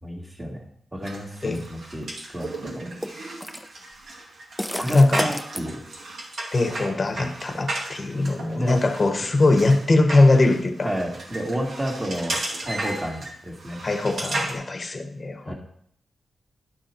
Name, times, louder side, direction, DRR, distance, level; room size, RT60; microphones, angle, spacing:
voice 1, 0.0-0.6 0.9-2.1 2.3-2.9 4.8-5.8 7.2-7.6 8.5-8.8 10.8-13.8 15.4-15.5, equal, 20° right, 0 dB, 2.0 m, -31 dB
sound 1, 1.0-14.5, right 2 dB, 70° right, 2.2 m, -35 dB
sound 2, 1.5-1.7 3.0-3.7 4.6-5.6, equal, ahead, 0.5 m, -31 dB
voice 2, 4.9-5.3 6.5-10.9 13.8-15.5, left 2 dB, 35° left, 7 dB, 1.0 m, -21 dB
11.5 x 5.4 x 4.4 m, 0.68 s
wide cardioid pair, 100°, 0 cm